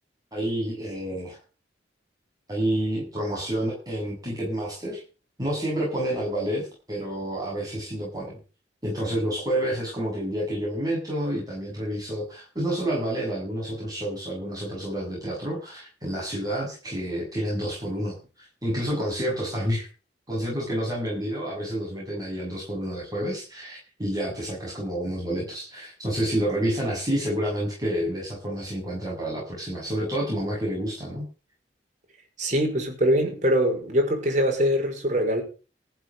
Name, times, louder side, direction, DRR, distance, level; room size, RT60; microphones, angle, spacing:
voice 1, 0.3-1.4 2.5-5.0 5.4-6.6 6.9-8.4 8.8-19.9 20.3-31.2, equal, 20° right, 7.5 m, -29 dB
voice 2, 32.4-35.4, equal, 45° right, 4.9 m, -23 dB
15.0 x 7.1 x 7.7 m
head